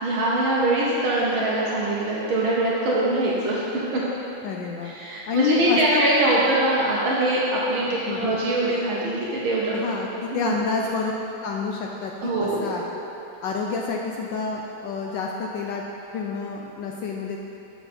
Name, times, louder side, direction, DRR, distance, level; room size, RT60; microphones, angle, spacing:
voice 1, 0.0-4.0 4.8-9.7 10.3-10.7 12.2-12.7, right 1 dB, 70° right, -6 dB, 1.7 m, -23 dB
voice 2, 4.4-4.9 5.3-6.0 7.9-8.4 9.7-11.1 11.4-12.1 12.4-12.8 13.4-15.8 16.1-17.4, left 5 dB, 75° left, 0 dB, 1.0 m, -28 dB
7.4 x 7.0 x 4.2 m, 2.9 s
omnidirectional pair, 2.4 m